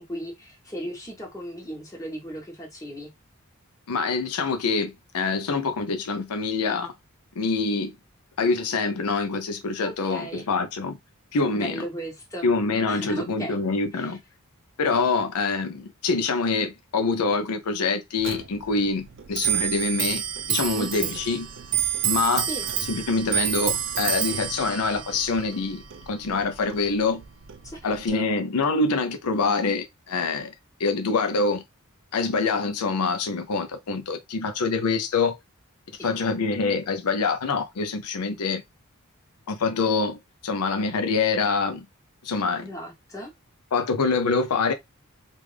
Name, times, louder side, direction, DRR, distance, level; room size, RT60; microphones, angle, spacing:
voice 1, 0.0-3.1 9.8-10.5 11.5-12.5 12.9-13.6 14.0-14.2 20.8-21.2 22.3-22.7 27.6-28.3 36.0-36.1 42.6-43.3, equal, 15° left, 1.2 m, -36 dB
voice 2, 3.9-6.9 7.4-7.9 8.4-11.0 11.3-11.8 12.4-14.2 14.8-20.2 20.5-21.5 22.0-22.5 22.9-27.2 27.8-30.5 30.8-31.6 32.1-35.4 36.0-38.6 39.5-41.9 42.2-42.7 43.7-44.7, left 4 dB, 85° left, 0.5 m, -25 dB
Clock, 18.2-28.1, right 10 dB, 55° right, 0.5 m, -29 dB
3.4 x 2.5 x 3.3 m
head